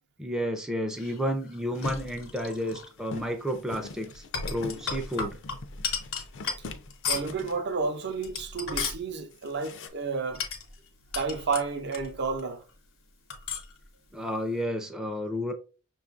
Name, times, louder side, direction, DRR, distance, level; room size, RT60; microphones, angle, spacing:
voice 1, 0.2-5.3 14.1-15.5, equal, 5° right, 0.4 m, -31 dB
sound 1, 1.0-2.9 4.1-7.4 8.1-9.0 10.3-12.4 12.7-12.8 13.3-13.8, left 5 dB, 80° left, 0.9 m, -35 dB
sound 2, 1.7-8.0 8.3-8.4 8.6-9.0 9.3-9.9, left 3 dB, 60° left, 0.4 m, -42 dB
voice 2, 7.1-10.4 11.1-12.6, right 4 dB, 55° right, 0.5 m, -31 dB
5.7 x 2.3 x 2.4 m
head